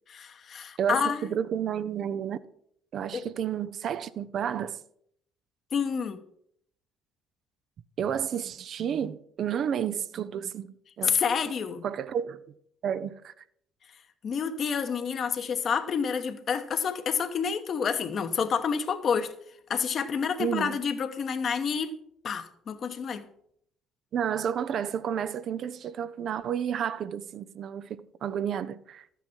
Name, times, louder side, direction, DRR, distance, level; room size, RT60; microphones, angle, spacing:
voice 1, 0.1-1.3 3.1-3.3 5.7-6.2 11.0-11.8 14.2-19.3 19.7-21.9 22.2-23.2, left 6 dB, 50° left, 1.1 m, -29 dB
voice 2, 0.8-2.4 2.9-4.8 8.0-10.7 11.0-11.1 11.8-12.4 12.8-13.3 20.4-20.8 24.1-29.1, right 8 dB, 55° right, 0.6 m, -31 dB
12.5 x 9.0 x 4.6 m
hypercardioid pair, 55°, 0 cm